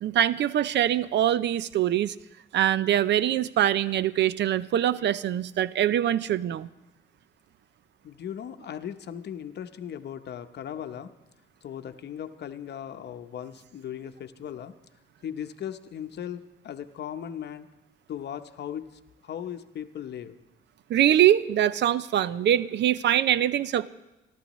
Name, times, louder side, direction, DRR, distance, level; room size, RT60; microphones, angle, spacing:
voice 1, 0.0-2.1 2.5-6.7 20.9-23.9, right 11 dB, 60° right, 17 dB, 0.5 m, -23 dB
voice 2, 8.0-11.1 11.6-14.8 15.2-17.7 18.1-18.9 19.2-20.4, left 9 dB, 60° left, 9 dB, 0.8 m, -37 dB
29.5 x 12.5 x 3.1 m, 0.97 s
cardioid pair, 90°, 20 cm